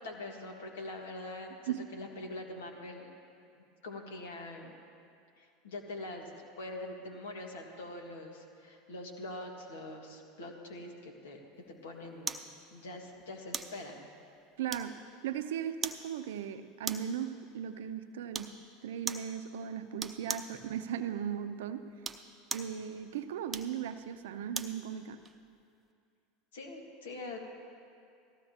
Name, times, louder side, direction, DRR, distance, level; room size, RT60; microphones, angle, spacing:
voice 1, 0.0-3.1 3.6-4.7 5.4-11.4 11.7-12.4 12.7-14.1 26.5-27.4, left 2 dB, 80° left, 2 dB, 1.8 m, -44 dB
sound 1, 12.3-12.5 13.5-13.8 14.7-15.1 15.8-16.1 16.8-17.2 18.3-18.6 19.1-19.3 20.0-20.5 21.9-22.8 23.5-24.8 25.3-25.4, right 5 dB, 25° right, 0.7 m, -38 dB
voice 2, 14.6-18.6 18.8-21.8 22.5-25.2, right 9 dB, 75° right, 10 dB, 0.6 m, -37 dB
18.5 x 15.0 x 2.9 m, 2.4 s
hypercardioid pair, 85°, 0 cm